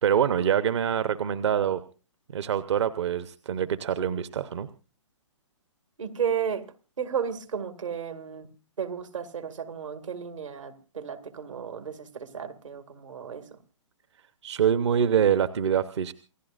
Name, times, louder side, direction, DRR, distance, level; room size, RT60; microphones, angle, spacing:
voice 1, 0.0-1.8 2.3-4.7 14.4-16.1, right 8 dB, 65° right, 0.9 m, -25 dB
voice 2, 6.0-6.7 7.0-8.5 8.8-13.5, right 7 dB, 80° right, 2.2 m, -33 dB
28.5 x 16.0 x 2.5 m
hypercardioid pair, 140°, 16 cm